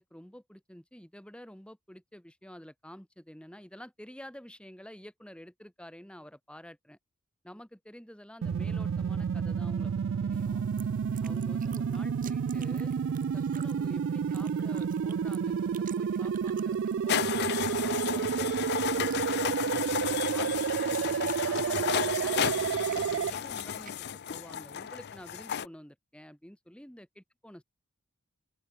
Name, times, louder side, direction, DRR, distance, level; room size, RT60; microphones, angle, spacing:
voice 1, 0.0-7.0 7.4-9.9 10.2-10.6 11.2-12.9 13.3-19.2 20.1-27.6, equal, 5° left, 2.6 m, -49 dB
sound 1, 8.4-23.3, right 7 dB, 65° right, 0.3 m, -30 dB
sound 2, 10.3-23.9, right 9 dB, 40° right, 2.2 m, -54 dB
sound 3, 17.1-25.7, left 8 dB, 50° left, 0.5 m, -33 dB
open air
head